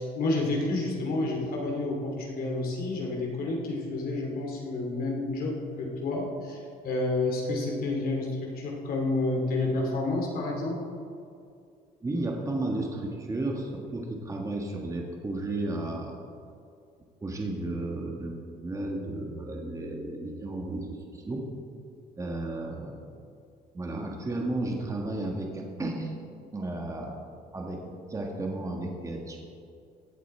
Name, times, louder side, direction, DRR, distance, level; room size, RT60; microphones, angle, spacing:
voice 1, 0.0-10.8, left 2 dB, 60° left, 0 dB, 2.6 m, -30 dB
voice 2, 12.0-16.2 17.2-18.3 18.6-21.5 22.2-23.1 23.7-26.1 26.5-27.1 27.5-29.5, right 2 dB, 20° right, 1 dB, 1.6 m, -33 dB
16.0 x 8.4 x 4.3 m, 2.4 s
cardioid pair, 110°, 17 cm